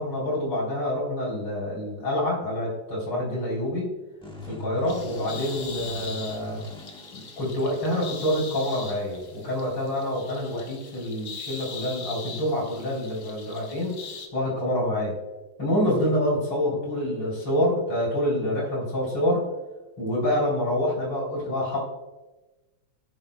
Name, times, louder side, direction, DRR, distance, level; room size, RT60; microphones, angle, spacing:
voice 1, 0.0-3.9 4.5-6.6 7.1-13.9 14.3-15.1 15.6-19.4 20.0-21.8, left 1 dB, 80° left, -5 dB, 4.9 m, -27 dB
sound 1, 4.2-8.0, left 2 dB, 5° left, 0.7 m, -41 dB
sound 2, 4.9-14.3, left 5 dB, 55° left, 1.5 m, -41 dB
18.5 x 8.9 x 2.3 m, 1.1 s
omnidirectional pair, 2.3 m